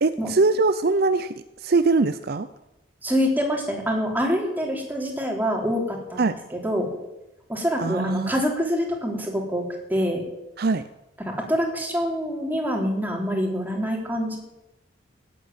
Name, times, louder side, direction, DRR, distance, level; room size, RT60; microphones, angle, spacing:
voice 1, 0.0-2.5 6.2-6.4 7.8-8.3 10.6-10.8, right 3 dB, 50° right, 11 dB, 0.6 m, -22 dB
voice 2, 3.0-6.9 7.5-9.6 9.9-10.2 11.2-14.4, equal, 10° right, 0 dB, 3.4 m, -25 dB
18.0 x 8.5 x 9.3 m, 0.96 s
head